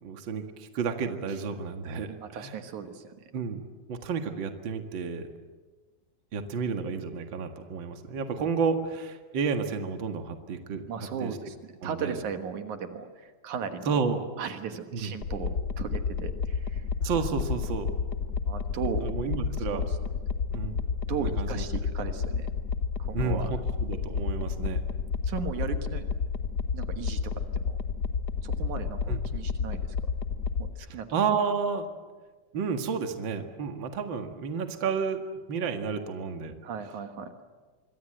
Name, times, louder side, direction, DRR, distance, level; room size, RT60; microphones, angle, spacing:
voice 1, 0.0-2.5 3.3-3.6 3.9-5.3 6.3-10.8 11.2-11.3 11.8-12.2 13.8-14.2 14.9-15.1 17.0-17.9 19.0-19.8 20.4-20.8 21.2-21.6 23.1-24.8 29.1-29.2 30.9-31.9 32.5-35.2 35.5-36.5, right 5 dB, 45° right, 6 dB, 2.2 m, -31 dB
voice 2, 2.1-3.3 10.9-11.6 11.8-14.0 14.4-16.9 18.4-19.1 19.7-20.0 21.1-22.5 23.0-23.5 25.2-26.1 26.7-27.4 27.6-27.8 28.4-29.9 30.6-31.1 36.6-37.3, right 7 dB, 70° right, 7 dB, 2.8 m, -36 dB
sound 1, 15.2-30.7, left 5 dB, 70° left, 0.9 m, -31 dB
25.5 x 24.0 x 7.9 m, 1.4 s
omnidirectional pair, 3.6 m